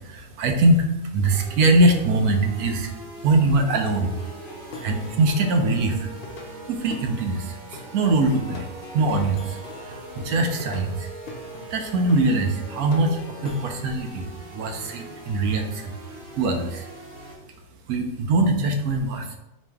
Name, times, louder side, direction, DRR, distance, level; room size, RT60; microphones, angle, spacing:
voice 1, 0.0-4.2 4.8-6.1 6.4-8.7 8.9-11.1 11.7-15.9 16.3-16.9 17.9-19.4, right 2 dB, 80° right, 4 dB, 1.1 m, -22 dB
sound 1, 1.3-17.4, right 2 dB, 40° right, 1.2 m, -42 dB
Plucked string instrument, 3.9-13.7, left 3 dB, 75° left, 0.5 m, -42 dB
4.3 x 3.0 x 3.4 m, 0.91 s
omnidirectional pair, 1.6 m